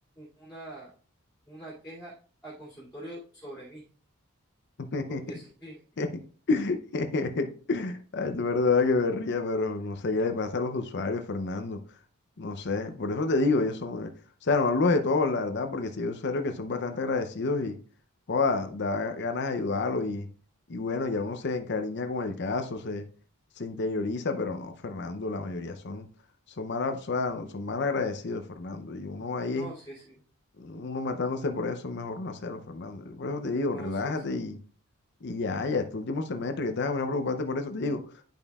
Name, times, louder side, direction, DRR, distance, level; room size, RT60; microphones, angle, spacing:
voice 1, 0.2-0.9 1.5-2.1 2.4-3.8 5.1-5.8 29.5-30.2 33.7-34.2, right 1 dB, 10° left, 2.3 m, -44 dB
voice 2, 4.8-5.2 6.0-6.1 6.5-11.8 12.4-14.1 14.4-17.8 18.3-20.3 20.7-23.0 23.6-26.1 26.6-29.7 30.6-34.6 35.2-38.0, left 3 dB, 50° left, 0.6 m, -29 dB
10.5 x 5.3 x 2.3 m
head